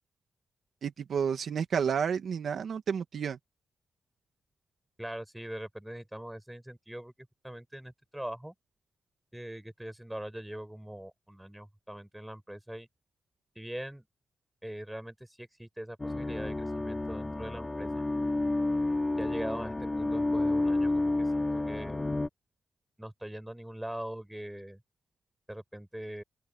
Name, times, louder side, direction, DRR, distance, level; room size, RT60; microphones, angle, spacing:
voice 1, 0.8-3.4, right 7 dB, 75° right, 1.8 m, -30 dB
voice 2, 5.0-8.5 9.3-12.9 13.6-14.0 14.6-18.0 19.1-22.1 23.0-24.8 25.5-26.2, right 1 dB, 5° right, 7.3 m, -42 dB
sound 1, 16.0-22.3, left 2 dB, 25° left, 5.2 m, -30 dB
open air
cardioid pair, 65°, 0 cm